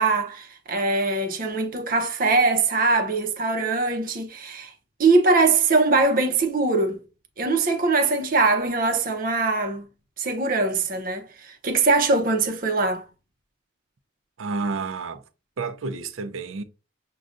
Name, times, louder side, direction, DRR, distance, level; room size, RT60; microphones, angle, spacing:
voice 1, 0.0-4.7 5.0-7.0 7.4-9.9 10.2-13.1, right 3 dB, 45° right, 0.7 m, -22 dB
voice 2, 14.4-15.2 15.6-16.6, right 4 dB, 80° right, 0.5 m, -30 dB
6.3 x 2.3 x 2.5 m
head